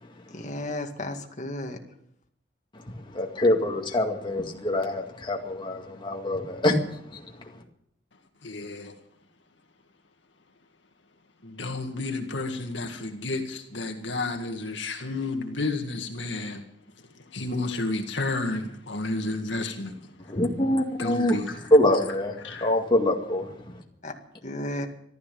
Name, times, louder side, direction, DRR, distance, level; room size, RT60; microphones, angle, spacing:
voice 1, 0.3-1.8 24.0-24.1 24.4-24.9, left 1 dB, 40° left, 3 dB, 2.1 m, -33 dB
voice 2, 3.1-6.8 7.1-7.2 20.3-21.4 21.7-22.4 22.6-23.5, left 1 dB, 25° left, 1 dB, 2.1 m, -24 dB
voice 3, 8.4-8.9 11.4-16.6 17.2-20.1 21.0-21.7 22.4-22.7, left 2 dB, 75° left, 4 dB, 2.1 m, -31 dB
15.0 x 13.0 x 7.1 m, 0.73 s
head